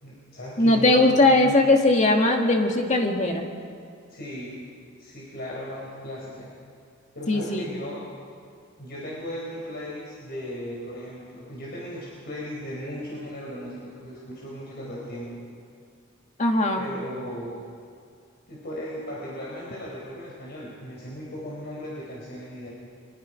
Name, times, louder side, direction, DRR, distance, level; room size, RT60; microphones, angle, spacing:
voice 1, 0.0-1.6 4.1-4.6 5.0-6.5 7.1-8.0 8.8-15.4 16.5-17.6 18.5-22.7, equal, 50° left, -5 dB, 4.4 m, -37 dB
voice 2, 0.6-3.5 7.3-7.6 16.4-16.9, left 2 dB, 35° left, 3 dB, 2.0 m, -19 dB
24.0 x 21.5 x 5.2 m, 2.3 s
head